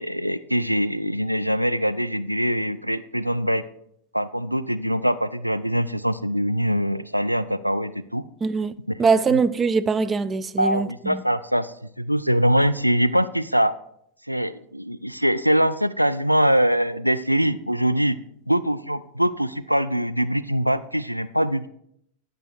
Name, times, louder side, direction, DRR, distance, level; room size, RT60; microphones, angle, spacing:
voice 1, 0.0-3.6 4.1-8.2 9.1-9.4 10.6-13.7 14.3-18.2 18.5-21.7, equal, 90° right, 0.3 m, -23 dB
voice 2, 8.4-8.7 9.0-11.2, right 5 dB, 20° right, 0.4 m, -22 dB
10.5 x 6.2 x 4.7 m
figure-of-eight pair, 90°, 0 cm